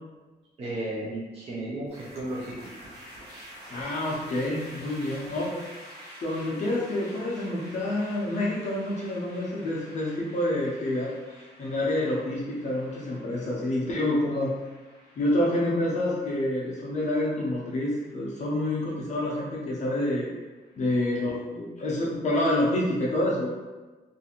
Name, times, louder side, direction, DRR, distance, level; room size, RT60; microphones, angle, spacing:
voice 1, 0.6-2.7, right 1 dB, 35° right, -5 dB, 0.4 m, -34 dB
sound 1, 1.9-21.1, equal, 80° right, 0.9 m, -49 dB
voice 2, 3.7-5.6 6.2-14.5 15.2-20.3 20.8-23.6, left 1 dB, 45° left, -5 dB, 0.5 m, -28 dB
2.4 x 2.4 x 2.8 m, 1.3 s
wide cardioid pair, 160°, 17 cm